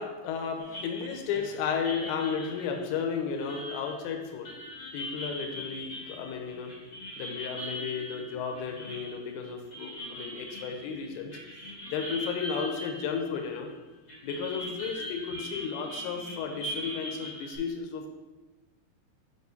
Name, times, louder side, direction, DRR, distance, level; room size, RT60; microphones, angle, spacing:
voice 1, 0.0-4.5 4.9-6.7 7.2-11.4 11.9-13.7 14.2-18.1, left 6 dB, 85° left, 4 dB, 2.9 m, -33 dB
sound 1, 0.6-13.7 14.1-17.6, equal, 60° left, 1.1 m, -41 dB
7.9 x 5.3 x 2.6 m, 1.2 s
omnidirectional pair, 5.3 m